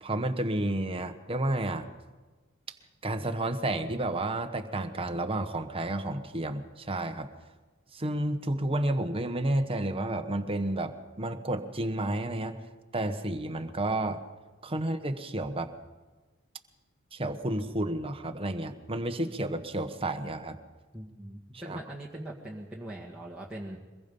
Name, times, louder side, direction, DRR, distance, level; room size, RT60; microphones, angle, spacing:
voice 1, 0.0-1.9 2.7-2.8 3.0-7.3 7.9-12.6 12.9-14.2 14.6-15.7 17.1-20.6 21.7-21.8, right 1 dB, 25° right, 7 dB, 1.3 m, -31 dB
voice 2, 20.9-23.8, right 1 dB, 5° right, -5 dB, 1.9 m, -41 dB
23.5 x 21.0 x 5.5 m, 1.3 s
head